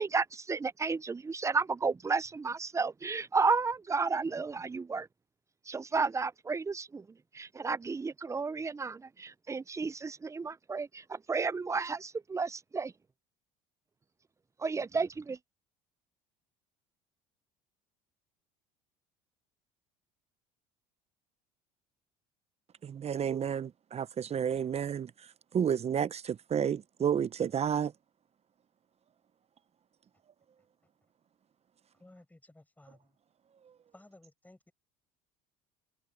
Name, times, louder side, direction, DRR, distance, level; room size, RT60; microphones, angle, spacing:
voice 1, 0.0-5.1 5.7-7.1 7.3-12.9 14.6-15.4, right 4 dB, 15° right, 0.6 m, -32 dB
voice 2, 22.8-25.1 25.5-27.9, right 8 dB, 35° right, 1.0 m, -31 dB
voice 3, 31.9-33.2 33.9-34.7, left 1 dB, 10° left, 6.3 m, -57 dB
hypercardioid pair, 75°, 18 cm